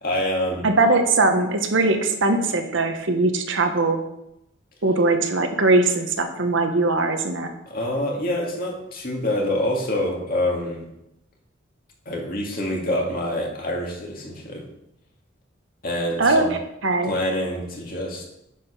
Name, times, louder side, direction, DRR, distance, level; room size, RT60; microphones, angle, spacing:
voice 1, 0.0-0.7 7.7-10.8 12.1-14.6 15.8-16.5 17.1-18.2, left 1 dB, 45° left, -1 dB, 2.1 m, -26 dB
voice 2, 0.6-4.0 4.8-7.5 16.2-17.1, right 3 dB, 65° right, 6 dB, 1.0 m, -20 dB
9.3 x 5.1 x 5.8 m, 0.82 s
head